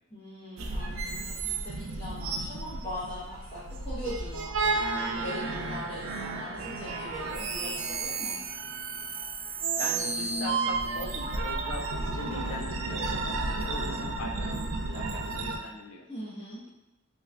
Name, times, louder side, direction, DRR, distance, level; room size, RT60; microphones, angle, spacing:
voice 1, 0.1-8.3 16.1-16.6, equal, 25° left, -10 dB, 1.0 m, -41 dB
sound 1, 0.6-15.6, right 3 dB, 70° right, 0.4 m, -32 dB
voice 2, 9.5-13.0 13.5-16.1, left 2 dB, 75° left, 3 dB, 0.5 m, -41 dB
3.4 x 3.1 x 2.4 m, 1.0 s
head